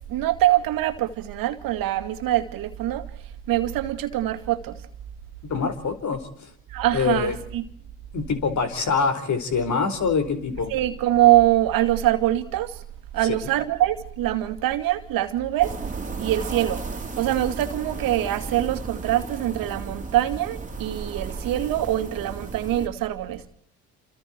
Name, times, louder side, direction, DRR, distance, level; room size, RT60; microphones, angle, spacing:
voice 1, 0.1-3.0 3.5-4.7 6.7-7.6 10.7-12.7 13.1-15.7 16.2-16.8 17.2-23.4, right 13 dB, 70° right, 2.4 m, -23 dB
voice 2, 5.5-6.5 6.9-7.4 8.1-10.7 13.2-13.5, left 5 dB, 50° left, 4.7 m, -25 dB
sound 1, 15.6-22.9, right 3 dB, 20° right, 3.5 m, -34 dB
28.5 x 27.0 x 4.6 m
hypercardioid pair, 55°, 35 cm